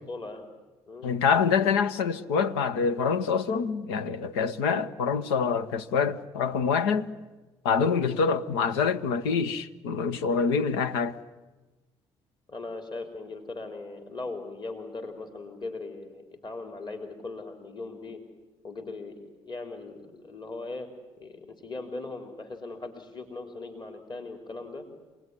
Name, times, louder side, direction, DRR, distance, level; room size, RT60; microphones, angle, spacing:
voice 1, 0.1-0.5 0.9-1.1 12.5-18.2 18.6-19.2 19.4-20.9 21.2-24.9, left 3 dB, 35° left, 3.7 m, -39 dB
voice 2, 1.0-7.1 7.6-11.2, left 6 dB, 90° left, 0.9 m, -26 dB
26.5 x 19.5 x 9.8 m
hypercardioid pair, 55°, 13 cm